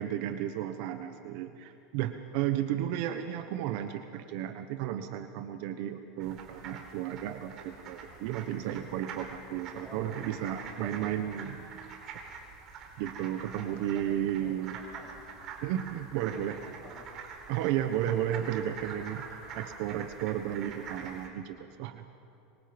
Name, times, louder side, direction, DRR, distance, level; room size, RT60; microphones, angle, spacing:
voice 1, 0.0-11.8 13.0-14.8 15.6-16.6 17.5-22.0, right 11 dB, 65° right, 8 dB, 1.1 m, -33 dB
sound 1, 6.2-21.3, right 5 dB, 45° right, 4.0 m, -45 dB
voice 2, 9.8-11.2 13.6-15.2 16.3-17.2, equal, 5° right, -3 dB, 6.8 m, -51 dB
25.5 x 24.5 x 5.3 m, 2.7 s
supercardioid pair, 135°, 0 cm